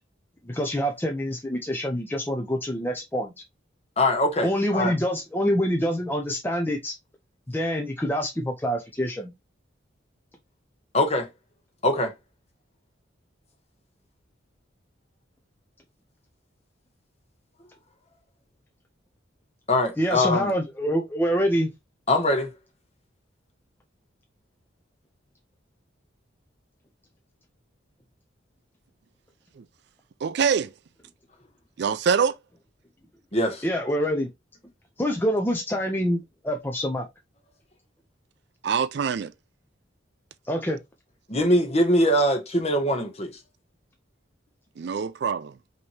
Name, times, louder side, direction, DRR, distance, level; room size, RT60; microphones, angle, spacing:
voice 1, 0.5-3.3 4.4-6.9 7.5-9.3 20.0-21.7 33.6-34.3 35.0-37.1 40.5-40.8, equal, 10° left, 0.6 m, -26 dB
voice 2, 4.0-4.9 10.9-11.3 11.8-12.1 19.7-20.5 22.1-22.5 33.3-33.6 41.3-43.4, left 1 dB, 35° left, 1.3 m, -22 dB
voice 3, 30.2-30.7 31.8-32.4 38.6-39.3 44.8-45.6, right 6 dB, 55° right, 0.4 m, -24 dB
5.3 x 3.0 x 3.3 m
head